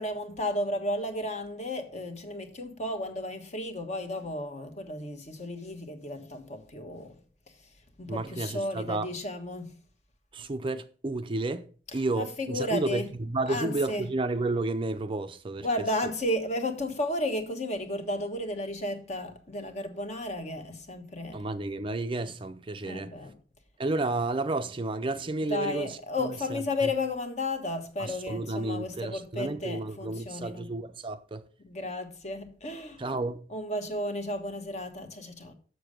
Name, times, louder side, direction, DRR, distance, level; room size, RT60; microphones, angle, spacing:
voice 1, 0.0-7.2 8.0-9.7 12.2-13.1 13.5-14.1 15.6-21.4 22.9-23.4 25.5-30.7 31.6-33.0 33.5-35.5, left 1 dB, 40° left, 1.3 m, -33 dB
voice 2, 8.1-9.1 10.3-11.7 11.9-15.7 21.3-23.1 23.8-26.9 28.0-31.4 33.0-33.5, right 2 dB, 30° right, 0.5 m, -31 dB
6.9 x 6.5 x 6.4 m
head